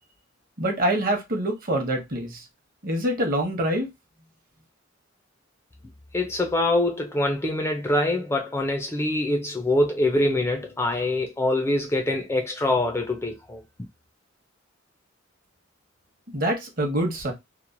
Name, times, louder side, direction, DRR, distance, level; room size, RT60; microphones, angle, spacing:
voice 1, 0.6-2.4 2.8-3.9 16.3-17.3, right 1 dB, 45° right, 0.8 m, -25 dB
voice 2, 6.1-13.6, left 1 dB, 10° left, 0.3 m, -24 dB
2.9 x 2.1 x 2.5 m
head